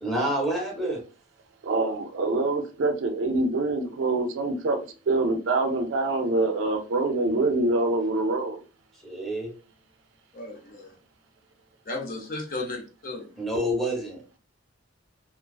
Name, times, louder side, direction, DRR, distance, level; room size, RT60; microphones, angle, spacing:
voice 1, 0.0-1.0 9.0-9.5 13.4-14.2, equal, ahead, 0.7 m, -28 dB
voice 2, 1.6-8.6, right 2 dB, 70° right, 0.4 m, -25 dB
voice 3, 10.3-11.0 11.9-13.3, left 2 dB, 45° left, 0.6 m, -35 dB
2.4 x 2.3 x 2.3 m
head